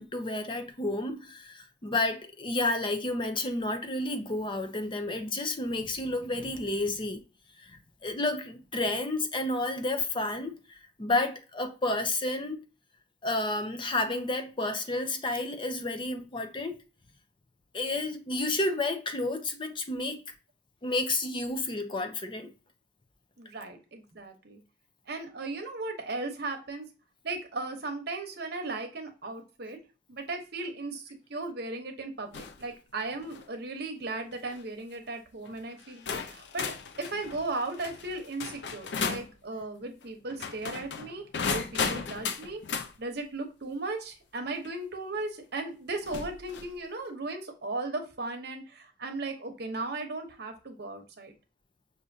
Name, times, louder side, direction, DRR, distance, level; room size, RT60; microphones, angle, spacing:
voice 1, 0.0-7.2 7.6-12.6 13.2-16.8 17.7-20.2 20.8-22.5, left 2 dB, 30° left, 0.6 m, -31 dB
voice 2, 23.4-24.6 25.1-26.9 27.2-29.8 30.1-36.7 37.0-42.6 43.0-51.3, right 2 dB, 65° right, 0.9 m, -36 dB
sound 1, 32.3-32.6 33.1-33.5 34.3-34.6 35.4-35.5 36.1-39.3 40.3-42.9 44.6-44.7 46.0-46.7, left 5 dB, 70° left, 0.5 m, -35 dB
6.2 x 2.6 x 2.7 m
head